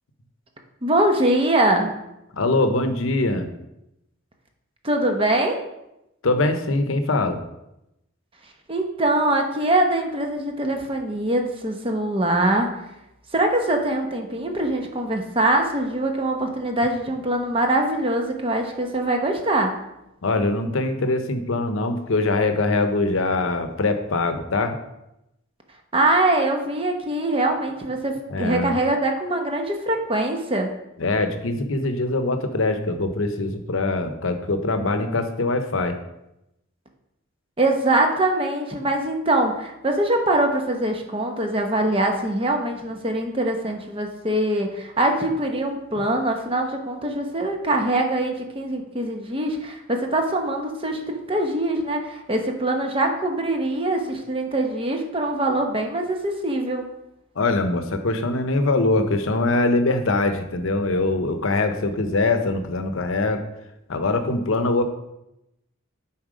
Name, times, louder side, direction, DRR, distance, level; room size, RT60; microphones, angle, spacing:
voice 1, 0.8-1.9 4.8-5.6 8.7-12.7 13.3-19.7 25.9-30.7 37.6-56.8, right 1 dB, 25° right, 3 dB, 0.9 m, -23 dB
voice 2, 2.3-3.5 6.2-7.4 20.2-24.8 28.3-28.7 31.0-36.0 57.4-63.4 63.9-64.8, left 2 dB, 70° left, 8 dB, 0.7 m, -23 dB
7.4 x 4.3 x 5.0 m, 0.88 s
head